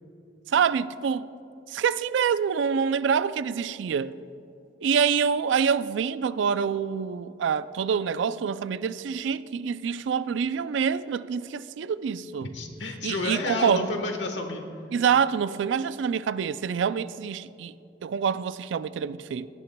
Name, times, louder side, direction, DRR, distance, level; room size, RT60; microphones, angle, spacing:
voice 1, 0.5-1.3 1.7-4.2 4.8-12.5 13.0-13.9 14.9-17.7 18.0-19.5, right 7 dB, 80° right, 0.3 m, -26 dB
voice 2, 12.4-14.6, left 2 dB, 75° left, 1.3 m, -30 dB
17.5 x 12.0 x 2.2 m
head